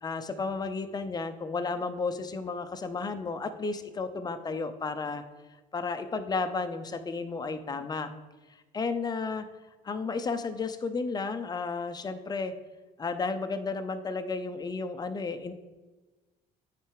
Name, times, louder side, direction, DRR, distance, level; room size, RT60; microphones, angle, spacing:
voice 1, 0.0-5.2 5.7-8.1 8.7-9.5 9.8-12.5 13.0-15.5, left 4 dB, 25° left, 9 dB, 0.6 m, -33 dB
8.9 x 3.4 x 4.8 m, 1.2 s
cardioid pair, 110°, 17 cm